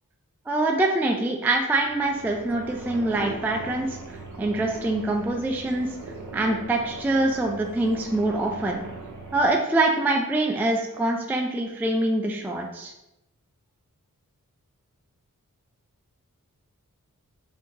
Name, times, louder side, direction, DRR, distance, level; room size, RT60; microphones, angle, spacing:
voice 1, 0.5-5.9 6.3-8.8 9.3-12.9, right 2 dB, 5° right, 2 dB, 0.3 m, -24 dB
sound 1, 1.7-9.5, right 3 dB, 65° right, 0.7 m, -40 dB
3.6 x 2.8 x 2.7 m, 0.90 s
wide cardioid pair, 70°, 33 cm